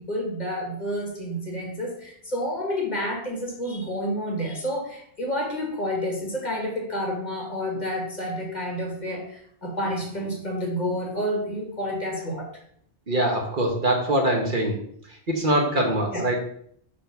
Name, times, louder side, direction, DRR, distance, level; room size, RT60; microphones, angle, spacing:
voice 1, 0.0-12.5 16.1-16.2, equal, 40° left, 0 dB, 1.8 m, -29 dB
voice 2, 13.1-14.8 15.1-16.4, right 1 dB, 45° right, 1 dB, 1.2 m, -23 dB
5.4 x 4.5 x 5.3 m, 0.65 s
omnidirectional pair, 1.2 m